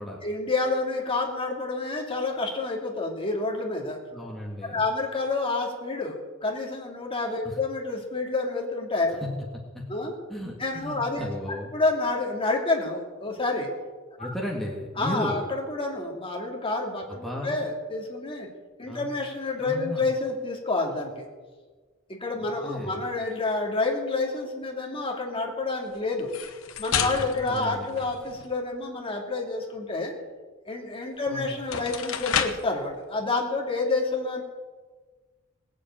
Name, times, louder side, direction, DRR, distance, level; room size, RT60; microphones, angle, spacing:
voice 1, 0.2-4.0 4.6-9.2 9.9-10.1 10.6-11.2 11.5-13.7 14.2-14.3 15.0-18.5 18.8-21.3 22.1-26.3 26.8-30.1 30.7-34.4, left 3 dB, 25° left, 0 dB, 2.7 m, -29 dB
voice 2, 4.1-4.8 7.4-7.6 9.1-9.2 9.7-9.9 10.3-11.7 14.2-15.4 17.1-17.6 18.9-19.1 19.6-20.1 22.4-23.1 27.4-27.9 31.3-31.5, left 1 dB, ahead, -2 dB, 1.9 m, -35 dB
sound 1, 26.2-28.6 31.0-31.1 31.6-32.8, left 7 dB, 80° left, 1.2 m, -31 dB
20.0 x 7.7 x 8.8 m, 1.4 s
head